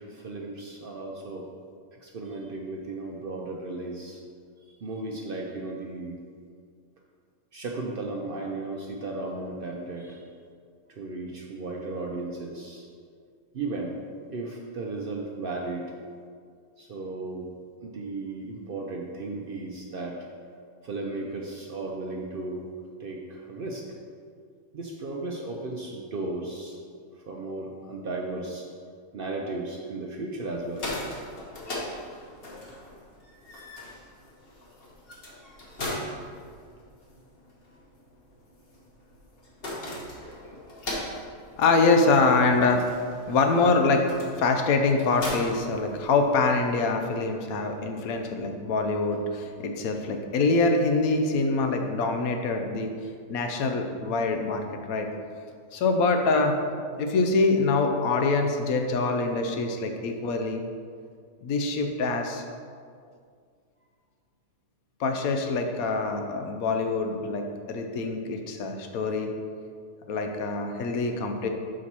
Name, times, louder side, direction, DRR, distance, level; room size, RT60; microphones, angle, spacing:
voice 1, 0.0-1.5 2.0-4.2 4.8-6.2 7.5-10.2 10.9-12.9 13.5-14.0 14.3-15.9 16.8-17.5 17.8-20.2 20.8-22.7 23.0-23.8 24.7-26.8 27.2-28.7 29.1-30.9, right 2 dB, 55° right, -1 dB, 0.6 m, -35 dB
sound 1, 30.5-46.5, left 1 dB, 45° left, 1.2 m, -39 dB
voice 2, 41.6-42.9 43.3-52.9 53.3-55.1 55.7-56.6 57.0-60.6 61.4-62.4 65.0-69.3 70.1-71.5, left 3 dB, 85° left, 4 dB, 1.1 m, -25 dB
5.0 x 4.1 x 6.0 m, 2.1 s
omnidirectional pair, 1.5 m